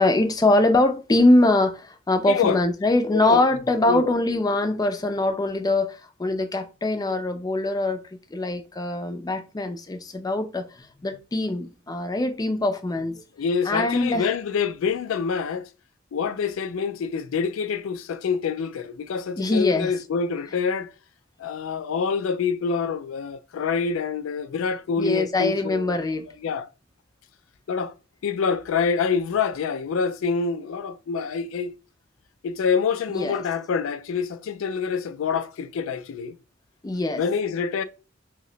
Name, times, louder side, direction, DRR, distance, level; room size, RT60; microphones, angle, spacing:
voice 1, 0.0-13.2 13.7-14.3 19.4-19.9 25.0-26.3 33.1-33.4 36.8-37.2, left 2 dB, 20° left, 0.4 m, -23 dB
voice 2, 2.3-2.6 3.1-3.4 3.9-4.1 13.4-15.7 16.1-20.9 21.4-26.0 26.4-26.7 27.7-27.9 28.2-31.8 32.4-36.4 37.2-37.8, left 5 dB, 80° left, 0.4 m, -26 dB
2.8 x 2.1 x 3.8 m
head